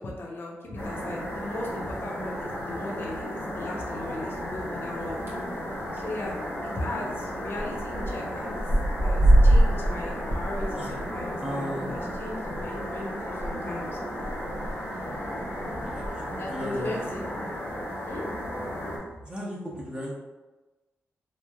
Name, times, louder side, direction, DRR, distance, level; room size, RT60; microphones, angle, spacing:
voice 1, 0.0-5.2 5.9-6.3 6.6-8.7 9.0-14.0 16.4-17.2 18.1-18.2, left 2 dB, 55° left, -3 dB, 0.6 m, -37 dB
sound 1, 0.8-19.0, equal, 80° left, 0.9 m, -34 dB
sound 2, 5.2-5.5 5.8-6.2 6.4-6.5 6.7-6.8 7.6-8.1 8.4-13.5 13.8-13.9 14.2-14.7 15.4-16.1, right 1 dB, 60° right, 1.0 m, -23 dB
voice 2, 11.4-11.9 15.8-17.0 19.2-20.1, equal, 20° right, -4 dB, 0.6 m, -35 dB
3.0 x 2.4 x 2.2 m, 1.2 s
cardioid pair, 95°, 5 cm